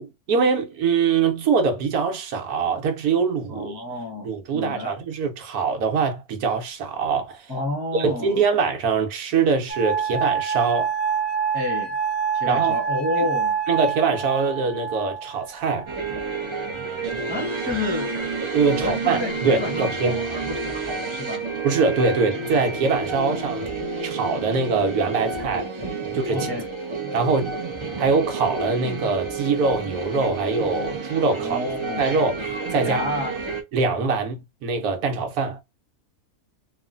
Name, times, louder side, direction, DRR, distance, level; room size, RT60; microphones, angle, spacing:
voice 1, 0.0-3.8 4.2-7.5 7.9-10.9 12.5-12.7 13.7-15.9 18.5-20.2 21.6-23.7 24.0-25.7 26.1-26.5 27.1-27.6 28.0-31.6 32.0-33.0 33.7-35.6, right 4 dB, 75° right, 1.2 m, -23 dB
voice 2, 3.5-5.0 7.5-8.5 11.5-12.0 12.3-13.6 17.3-18.2 18.8-21.5 23.3-23.4 25.8-25.9 26.3-26.7 31.4-32.0 32.8-33.3, left 2 dB, 20° left, 0.8 m, -30 dB
sound 1, 9.7-16.6 17.5-18.1, right 7 dB, 55° left, 0.8 m, -27 dB
sound 2, 15.9-33.6, right 3 dB, 45° right, 0.3 m, -30 dB
3.0 x 2.4 x 2.4 m
omnidirectional pair, 1.6 m